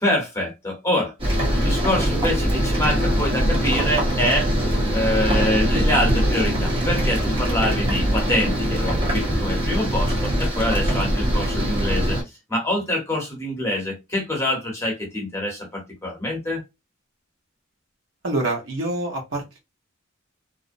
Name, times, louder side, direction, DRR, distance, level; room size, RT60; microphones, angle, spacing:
voice 1, 0.0-4.5 4.9-12.2 12.5-16.6, left 1 dB, 15° left, 1.0 m, -25 dB
sound 1, 1.2-12.2, equal, 25° right, 0.9 m, -22 dB
voice 2, 18.2-19.6, right 2 dB, 65° right, 0.9 m, -26 dB
2.5 x 2.0 x 2.5 m
head